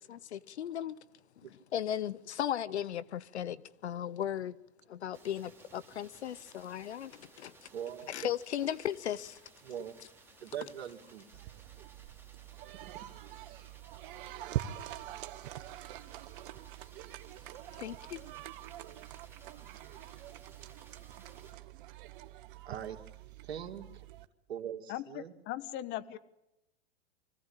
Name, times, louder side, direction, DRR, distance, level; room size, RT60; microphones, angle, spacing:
voice 1, 0.1-1.0 1.7-4.6 4.9-7.5 8.1-9.4 17.8-18.2, left 10 dB, 85° left, 0.8 m, -36 dB
sound 1, 5.1-21.5, right 3 dB, 5° right, 3.5 m, -59 dB
voice 2, 7.7-8.1 9.6-10.0 10.4-11.3 12.8-13.1 22.6-23.0 23.4-24.0 24.5-25.3, right 9 dB, 75° right, 2.7 m, -42 dB
sound 2, 11.3-24.3, right 14 dB, 50° right, 1.2 m, -45 dB
voice 3, 24.9-26.2, left 13 dB, 35° left, 1.2 m, -39 dB
25.0 x 16.0 x 9.0 m
hypercardioid pair, 125°, 33 cm